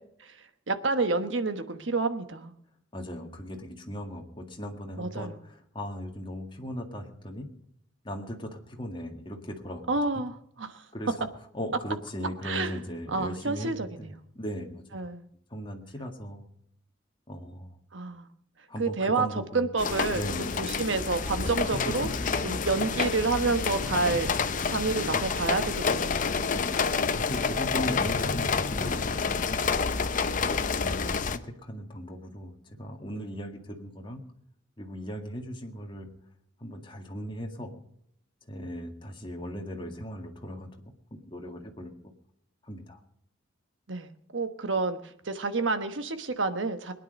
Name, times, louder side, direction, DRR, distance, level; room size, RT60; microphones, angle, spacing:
voice 1, 0.7-2.5 5.0-5.4 9.9-10.8 12.4-12.8 13.1-14.1 14.9-15.3 17.9-18.3 18.8-19.3 19.5-20.2 20.6-22.1 22.4-26.3 43.9-46.9, right 3 dB, 70° right, 9 dB, 1.2 m, -29 dB
voice 2, 2.9-7.5 8.0-9.8 10.1-10.2 10.9-11.3 11.5-15.1 15.5-16.5 17.3-17.8 18.7-19.6 20.1-20.5 22.0-22.1 26.5-26.8 27.1-29.7 30.3-34.2 34.8-36.1 36.6-37.8 38.5-40.7 41.1-41.9 42.6-43.0, equal, 25° left, 2 dB, 1.9 m, -38 dB
sound 1, 19.8-31.4, left 5 dB, 45° left, 0.7 m, -28 dB
21.5 x 10.0 x 5.3 m, 0.70 s
head